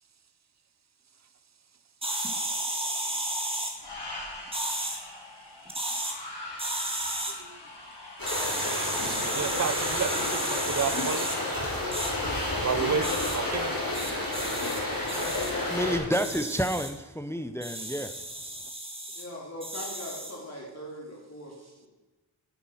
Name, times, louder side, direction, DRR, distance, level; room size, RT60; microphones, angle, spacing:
sound 1, 2.0-3.7 4.5-5.0 5.7-6.1 6.6-7.3 8.3-11.4 11.9-12.1 13.0-13.4 13.9-14.8 15.1-15.5 16.1-16.9 17.6-19.2 19.6-20.4, right 1 dB, 15° right, 1.9 m, -33 dB
sound 2, 3.8-12.7, left 2 dB, 65° left, 3.0 m, -42 dB
sound 3, 8.2-16.0, left 2 dB, 50° left, 4.1 m, -30 dB
voice 1, 9.2-11.3 12.6-13.7, right 6 dB, 40° right, 14 dB, 0.6 m, -31 dB
voice 2, 15.1-16.4 19.1-21.9, left 1 dB, 35° left, -3 dB, 2.8 m, -41 dB
voice 3, 15.7-18.1, equal, 5° left, 9 dB, 0.6 m, -29 dB
10.5 x 7.3 x 5.7 m, 1.1 s
wide cardioid pair, 70°, 43 cm